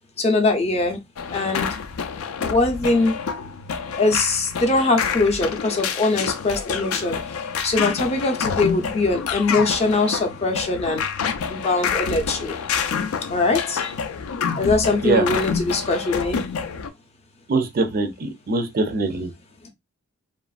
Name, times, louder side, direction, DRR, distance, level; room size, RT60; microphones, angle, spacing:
voice 1, 0.2-1.0 1.3-1.7 2.4-3.2 4.0-7.2 7.6-11.1 11.5-12.6 13.2-13.9 14.5-16.5, left 3 dB, 30° left, 0.5 m, -22 dB
sound 1, 1.2-16.9, left 6 dB, 85° left, 0.4 m, -28 dB
voice 2, 17.5-19.3, right 3 dB, 45° right, 0.4 m, -22 dB
2.9 x 2.4 x 2.3 m
head